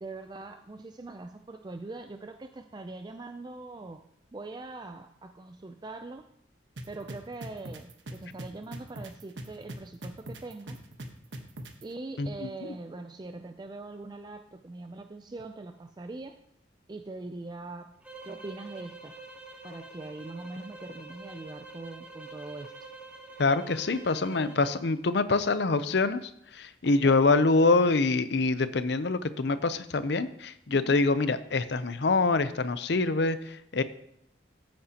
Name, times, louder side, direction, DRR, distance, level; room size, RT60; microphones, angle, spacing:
voice 1, 0.0-4.0 4.3-6.3 6.9-10.8 11.8-16.4 16.9-19.1 19.6-22.7 26.8-27.2 30.7-31.0, right 2 dB, 25° right, 7 dB, 0.4 m, -42 dB
sound 1, 6.8-11.8, right 1 dB, 75° right, 1.2 m, -40 dB
voice 2, 12.2-12.5 23.4-33.8, left 3 dB, 65° left, 13 dB, 0.6 m, -25 dB
sound 2, 18.0-24.8, right 3 dB, 5° right, 1.1 m, -47 dB
14.5 x 8.7 x 2.9 m, 0.75 s
head